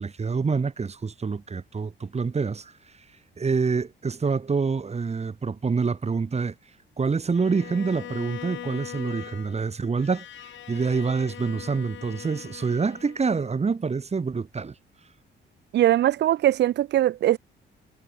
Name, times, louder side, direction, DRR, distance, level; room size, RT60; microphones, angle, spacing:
voice 1, 0.0-2.7 3.4-6.5 7.0-14.7, right 5 dB, 35° right, 4.2 m, -26 dB
Bowed string instrument, 7.3-13.6, left 11 dB, 70° left, 6.2 m, -41 dB
voice 2, 15.7-17.4, right 13 dB, 60° right, 0.5 m, -21 dB
cardioid pair, 90°, 20 cm